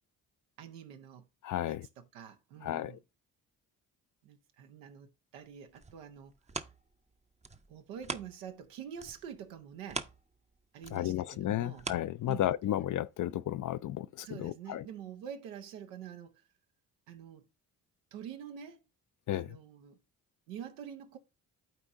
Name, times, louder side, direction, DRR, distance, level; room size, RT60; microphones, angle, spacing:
voice 1, 0.6-1.3 1.7-3.0 4.2-6.3 7.7-10.1 10.7-11.9 12.3-12.5 14.2-16.4 17.1-17.5 18.1-18.8 19.3-20.0 20.5-21.2, right 8 dB, 85° right, 0.9 m, -46 dB
voice 2, 1.4-1.9 2.6-3.0 10.9-14.9 19.3-19.6, left 12 dB, 45° left, 0.4 m, -33 dB
sound 1, 5.5-8.7 9.0-12.8 13.3-13.4, right 3 dB, 15° right, 0.7 m, -44 dB
12.0 x 4.3 x 2.5 m
hypercardioid pair, 45°, 47 cm